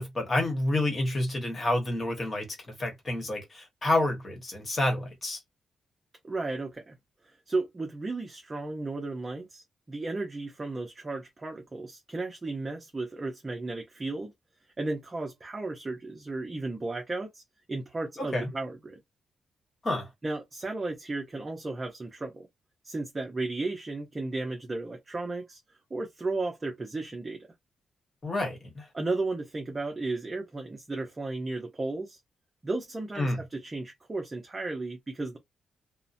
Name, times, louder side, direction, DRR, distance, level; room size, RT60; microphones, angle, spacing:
voice 1, 0.0-5.4 18.2-18.5 19.8-20.1 28.2-28.9 33.2-33.4, left 1 dB, 35° left, 1.1 m, -29 dB
voice 2, 6.2-7.0 7.2-14.3 14.8-17.4 17.7-19.0 20.2-22.5 22.8-27.4 28.9-32.2 32.6-35.4, right 3 dB, 25° right, 0.6 m, -34 dB
2.8 x 2.1 x 2.5 m
cardioid pair, 120°, 0 cm